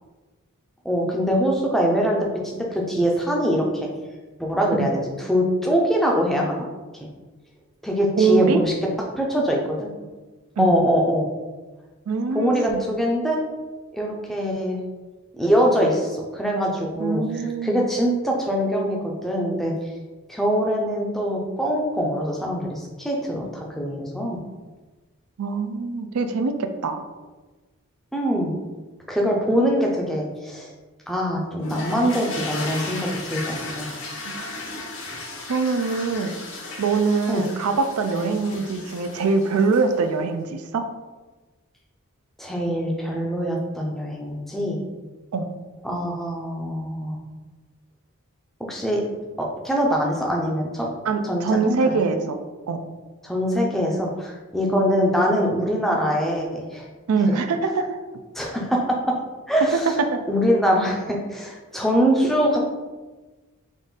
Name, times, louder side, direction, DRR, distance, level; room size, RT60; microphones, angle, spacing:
voice 1, 0.8-3.9 4.4-4.9 5.2-6.6 6.9-7.1 7.8-8.7 9.2-9.9 10.6-11.3 12.3-13.4 13.9-14.8 15.4-19.7 20.3-24.4 28.1-28.5 29.1-30.7 31.1-33.9 37.3-37.4 38.5-38.6 42.4-44.8 45.8-47.2 48.7-49.0 49.4-50.9 51.2-51.8 53.2-56.9 58.3-59.0 59.5-60.0 60.3-62.6, equal, ahead, -2 dB, 0.5 m, -23 dB
voice 2, 8.2-8.6 10.6-10.8 12.1-12.8 17.0-17.8 25.4-27.0 34.3-34.4 35.5-36.3 36.8-40.9 45.3-45.5 51.1-52.4 52.7-52.8 57.1-58.0 60.1-60.2, right 4 dB, 80° right, 7 dB, 0.4 m, -23 dB
sound 1, 31.6-40.1, left 2 dB, 60° left, 0.7 m, -35 dB
3.7 x 2.5 x 3.9 m, 1.3 s
head